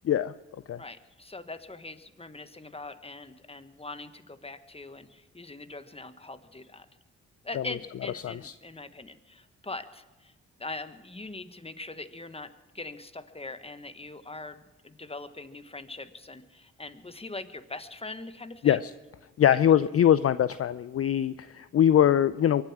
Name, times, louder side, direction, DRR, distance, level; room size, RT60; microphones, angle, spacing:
voice 1, 0.8-6.9 7.4-10.3 10.6-18.9 19.5-19.6, left 3 dB, 20° left, 11 dB, 1.4 m, -42 dB
voice 2, 19.4-22.6, left 10 dB, 45° left, 15 dB, 0.5 m, -22 dB
23.5 x 9.5 x 6.1 m, 1.2 s
supercardioid pair, 45°, 32 cm